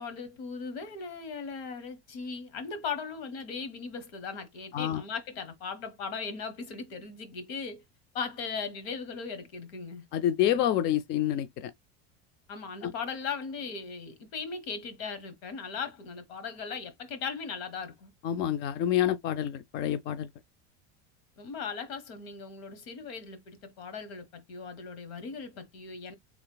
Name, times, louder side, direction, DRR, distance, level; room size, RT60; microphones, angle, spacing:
voice 1, 0.0-7.8 8.1-10.1 12.5-18.1 21.4-26.1, left 5 dB, 80° left, 1.3 m, -38 dB
voice 2, 10.1-11.7 12.8-12.9 18.2-20.3, left 11 dB, 35° left, 0.4 m, -28 dB
3.4 x 2.2 x 3.8 m
supercardioid pair, 140°, 31 cm